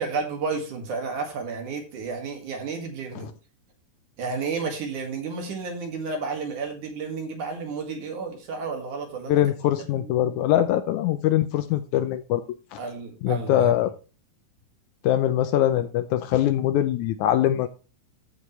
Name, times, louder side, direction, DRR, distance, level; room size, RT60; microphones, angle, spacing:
voice 1, 0.0-3.3 4.2-9.4 10.0-10.3 10.6-10.7 12.8-13.8, right 4 dB, 65° right, 4 dB, 3.3 m, -32 dB
voice 2, 9.3-12.4 12.7-12.8 13.2-13.9 15.0-17.7, left 12 dB, 80° left, 11 dB, 1.8 m, -22 dB
14.5 x 5.5 x 3.2 m, 0.33 s
omnidirectional pair, 3.9 m